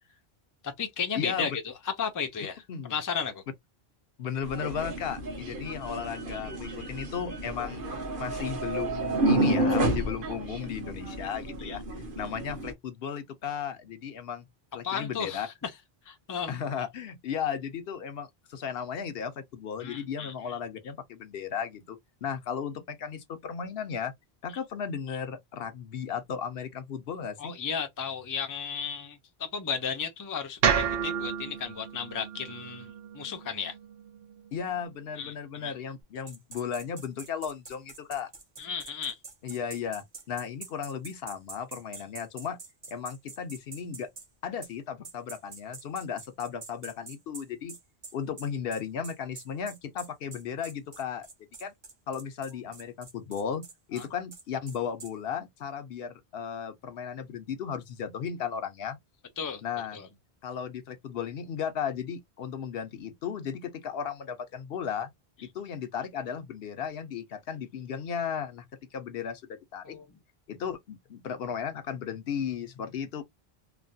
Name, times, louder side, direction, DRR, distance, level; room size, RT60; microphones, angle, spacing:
voice 1, 0.6-2.6 2.9-3.4 11.6-11.8 14.8-15.7 16.1-16.5 19.8-20.3 27.4-33.8 35.2-35.7 38.6-39.2 53.9-54.1 59.4-59.6 59.9-60.1 69.8-70.2, left 6 dB, 25° left, 0.4 m, -34 dB
voice 2, 1.1-1.5 2.7-2.9 4.2-11.8 12.2-14.5 14.7-15.5 16.5-24.1 24.4-27.5 34.5-38.3 39.4-42.6 42.9-44.1 44.4-47.8 48.1-51.3 51.6-51.7 52.1-53.6 53.9-59.0 59.6-60.0 60.4-65.1 65.4-68.6 68.9-70.0 70.5-73.2, left 7 dB, 70° left, 0.8 m, -35 dB
sound 1, 4.4-12.7, right 1 dB, 55° right, 1.2 m, -30 dB
sound 2, 30.6-34.8, right 7 dB, 70° right, 0.8 m, -31 dB
sound 3, 36.3-44.3 44.6-44.7 45.0-55.1, right 4 dB, 35° right, 0.5 m, -46 dB
3.1 x 2.2 x 2.6 m
omnidirectional pair, 1.1 m